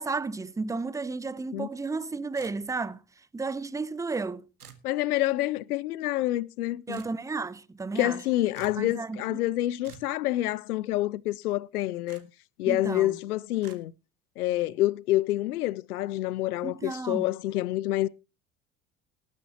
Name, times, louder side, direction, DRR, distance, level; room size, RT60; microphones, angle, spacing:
voice 1, 0.0-3.0 3.3-4.5 6.9-8.2 8.8-9.4 12.7-13.2 16.6-17.3, right 4 dB, 5° right, 0.6 m, -33 dB
sound 1, 2.4-2.9 4.6-4.9 6.9-7.1 8.5-8.8 9.8-10.1 12.1-12.2 13.6-13.8, right 7 dB, 85° right, 1.7 m, -49 dB
voice 2, 4.8-7.0 7.9-12.3 12.6-13.9 14.4-18.1, left 15 dB, 80° left, 0.6 m, -27 dB
19.0 x 10.5 x 2.9 m
hypercardioid pair, 70°, 44 cm